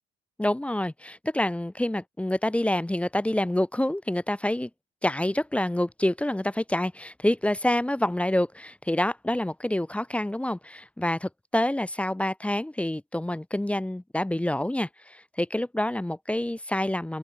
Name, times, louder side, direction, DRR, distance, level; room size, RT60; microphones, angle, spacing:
voice 1, 0.4-4.7 5.0-17.2, left 1 dB, 5° left, 0.7 m, -27 dB
open air
cardioid pair, 90°, 20 cm